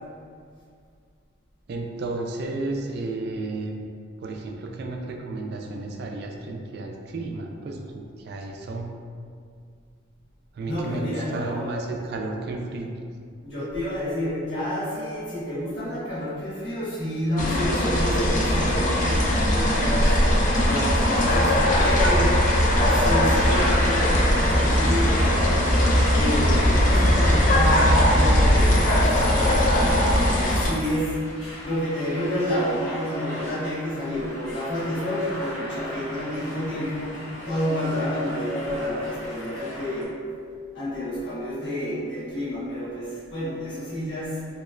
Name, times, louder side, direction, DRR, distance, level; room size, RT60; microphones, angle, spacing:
voice 1, 1.7-3.8 4.2-8.9 10.5-12.9, right 2 dB, 55° right, 1 dB, 0.3 m, -32 dB
voice 2, 10.6-11.7 13.4-20.2 20.6-25.4 26.1-31.3 31.6-40.2 40.7-44.5, left 1 dB, 60° left, -10 dB, 1.2 m, -29 dB
sound 1, 17.4-30.7, equal, 40° left, 0.4 m, -20 dB
sound 2, 23.2-40.0, equal, 75° left, 0.8 m, -38 dB
3.1 x 2.9 x 2.4 m, 2.2 s
head